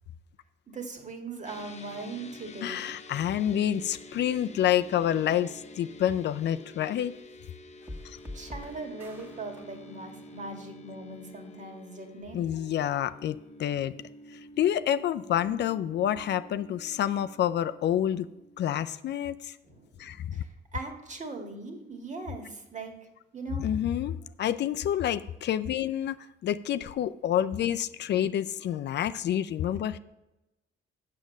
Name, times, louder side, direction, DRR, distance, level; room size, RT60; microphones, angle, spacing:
voice 1, 0.7-2.8 8.3-12.4 19.6-22.9 23.3-23.6, right 3 dB, 35° right, 4 dB, 1.9 m, -40 dB
sound 1, 1.5-18.9, left 1 dB, 35° left, 0.8 m, -49 dB
voice 2, 2.6-7.1 8.0-8.2 12.3-13.9 14.3-18.3 18.6-19.6 20.0-20.4 23.6-26.2 26.4-30.0, left 10 dB, 60° left, 12 dB, 0.4 m, -28 dB
sound 2, 7.8-11.1, left 1 dB, 10° right, 1.6 m, -46 dB
7.5 x 7.3 x 6.4 m, 0.97 s
cardioid pair, 90°, 20 cm